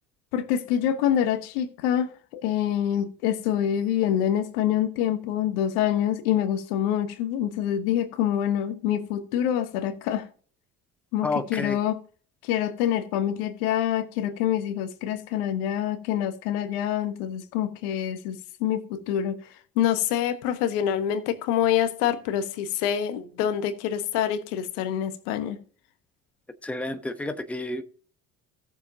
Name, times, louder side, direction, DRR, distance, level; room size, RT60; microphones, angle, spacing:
voice 1, 0.3-10.3 11.1-12.0 12.4-25.6, left 10 dB, 65° left, 1.3 m, -26 dB
voice 2, 11.2-11.8 26.6-27.8, left 2 dB, 5° left, 1.0 m, -30 dB
17.0 x 7.0 x 2.8 m
figure-of-eight pair, 60°, 48 cm